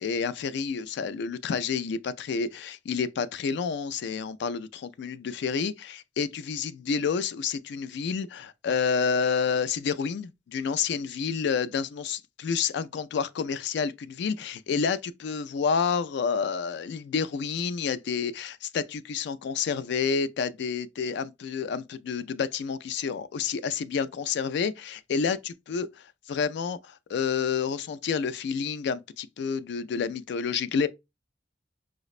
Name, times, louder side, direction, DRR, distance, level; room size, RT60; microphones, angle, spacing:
voice 1, 0.0-30.9, left 6 dB, 65° left, 0.3 m, -29 dB
4.9 x 2.0 x 2.4 m
head